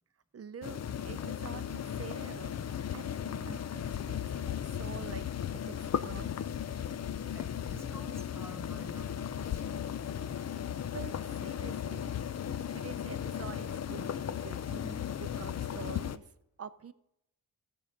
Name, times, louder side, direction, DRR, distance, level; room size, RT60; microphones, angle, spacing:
voice 1, 0.3-0.8 1.0-5.3 5.5-6.5 10.9-12.1 12.7-16.3 16.6-16.9, right 7 dB, 40° right, 13 dB, 0.6 m, -47 dB
sound 1, 0.6-16.2, left 9 dB, 40° left, 0.5 m, -36 dB
voice 2, 7.3-9.9, equal, 5° right, 7 dB, 0.9 m, -50 dB
16.0 x 7.2 x 5.1 m, 0.83 s
wide cardioid pair, 155°, 39 cm